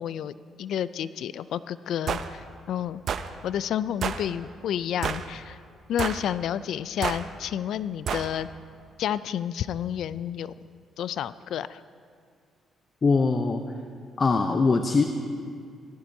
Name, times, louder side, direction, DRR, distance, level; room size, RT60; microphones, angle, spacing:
voice 1, 0.0-3.0 3.4-5.6 5.9-8.5 9.0-10.5 11.0-11.8, left 10 dB, 75° left, 16 dB, 0.3 m, -30 dB
sound 1, 2.1-2.3 3.1-3.3 4.0-4.2 5.0-5.3 6.0-6.3 7.0-7.2 8.1-8.3, right 7 dB, 60° right, 0.5 m, -29 dB
voice 2, 13.0-13.6 14.2-15.0, left 4 dB, 35° left, 6 dB, 0.6 m, -22 dB
18.0 x 13.5 x 2.7 m, 2.1 s
cardioid pair, 90°, 0 cm